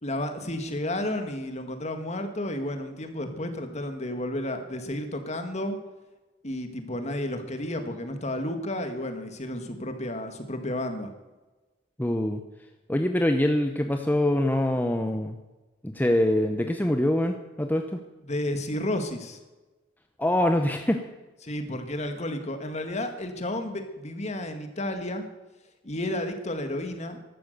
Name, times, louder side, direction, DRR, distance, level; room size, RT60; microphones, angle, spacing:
voice 1, 0.0-5.8 6.4-11.1 18.2-19.4 21.4-25.3 25.8-27.2, left 1 dB, 40° left, 7 dB, 1.9 m, -32 dB
voice 2, 12.0-12.4 12.9-15.4 15.8-17.9 20.2-21.0, left 1 dB, 10° left, 5 dB, 0.8 m, -24 dB
14.5 x 12.0 x 6.7 m, 1.1 s
head